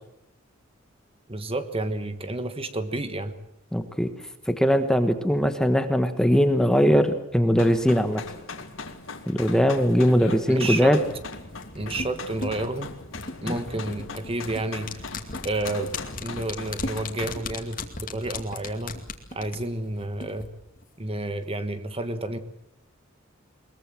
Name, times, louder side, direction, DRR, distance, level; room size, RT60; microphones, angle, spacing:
voice 1, 1.3-3.3 10.5-11.0 11.7-12.9 13.4-15.0 15.4-15.9 16.2-19.0 19.3-20.5 21.0-22.4, right 2 dB, 30° right, 10 dB, 1.5 m, -30 dB
voice 2, 3.7-4.1 4.5-8.2 9.3-11.0 13.5-13.6, equal, 5° left, 8 dB, 1.3 m, -21 dB
sound 1, 7.6-17.4, left 4 dB, 80° left, 2.3 m, -40 dB
sound 2, 11.1-20.5 20.8-20.9, left 3 dB, 45° left, 2.4 m, -37 dB
22.0 x 21.5 x 7.6 m, 0.78 s
head